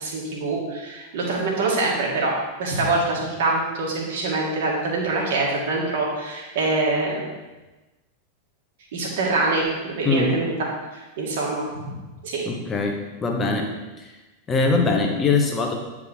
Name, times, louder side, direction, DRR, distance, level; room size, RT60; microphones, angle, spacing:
voice 1, 0.0-2.3 2.6-7.2 8.9-10.5 10.9-11.6 12.2-12.4, right 3 dB, 55° right, -2 dB, 2.0 m, -24 dB
voice 2, 12.5-14.0 14.5-15.7, left 3 dB, 20° left, 2 dB, 1.2 m, -22 dB
9.6 x 4.9 x 3.7 m, 1.1 s
figure-of-eight pair, 90°, 0 cm